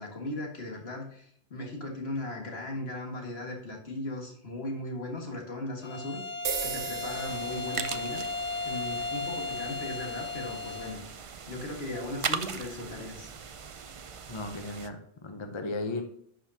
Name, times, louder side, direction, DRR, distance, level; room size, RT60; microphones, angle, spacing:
voice 1, 0.0-8.2 8.7-11.0 11.4-13.3, left 1 dB, 60° left, 0 dB, 1.9 m, -37 dB
Bowed string instrument, 5.8-11.1, left 3 dB, 80° left, 1.2 m, -36 dB
sound 1, 6.4-14.6, right 6 dB, 80° right, 1.1 m, -42 dB
sound 2, 7.1-14.9, right 6 dB, 60° right, 0.3 m, -39 dB
voice 2, 14.3-16.0, left 2 dB, 30° left, 5 dB, 0.7 m, -35 dB
10.5 x 5.2 x 2.7 m, 0.66 s
omnidirectional pair, 1.2 m